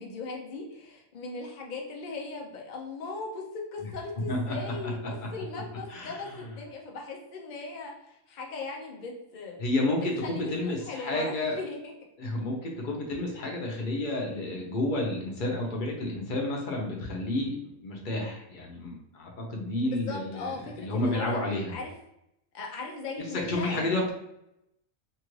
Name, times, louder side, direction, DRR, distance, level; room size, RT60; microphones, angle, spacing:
voice 1, 0.0-9.6 10.2-11.8 19.8-21.4 21.7-21.9 22.5-24.1, left 3 dB, 75° left, 0 dB, 0.4 m, -38 dB
voice 2, 5.9-6.2 9.6-11.6 12.2-17.5 17.8-20.5 20.8-21.7 23.5-24.1, left 2 dB, 45° left, -1 dB, 0.7 m, -30 dB
2.9 x 2.4 x 3.0 m, 0.82 s
omnidirectional pair, 1.4 m